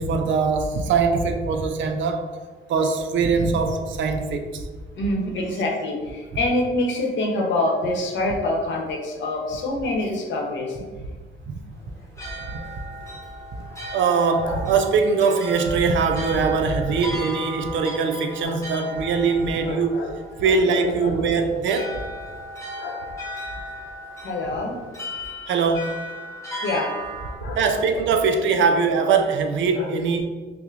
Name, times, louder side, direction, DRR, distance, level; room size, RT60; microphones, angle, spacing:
voice 1, 0.0-2.2 2.7-4.7 11.5-11.6 12.4-12.5 13.9-20.0 20.4-22.0 25.5-26.0 27.5-30.3, right 5 dB, 70° right, 5 dB, 0.5 m, -22 dB
voice 2, 4.9-10.8 14.4-14.6 16.8-16.9 18.4-18.6 19.6-21.2 22.8-23.0 24.2-24.8 26.5-26.9 27.3-28.1 29.7-29.9, left 2 dB, 70° left, 0 dB, 0.8 m, -26 dB
sound 1, 11.8-27.3, equal, 15° left, 0.9 m, -36 dB
5.6 x 2.1 x 2.5 m, 1.4 s
cardioid pair, 90°, 20 cm